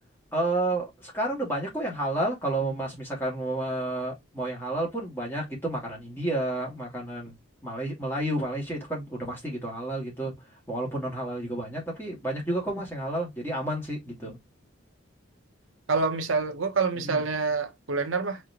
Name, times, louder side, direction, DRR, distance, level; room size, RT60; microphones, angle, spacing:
voice 1, 0.3-7.3 7.6-10.3 10.7-14.4 17.0-17.2, right 1 dB, 10° left, 2.4 m, -30 dB
voice 2, 15.9-18.4, right 4 dB, 75° right, 0.9 m, -27 dB
4.6 x 3.3 x 2.8 m
head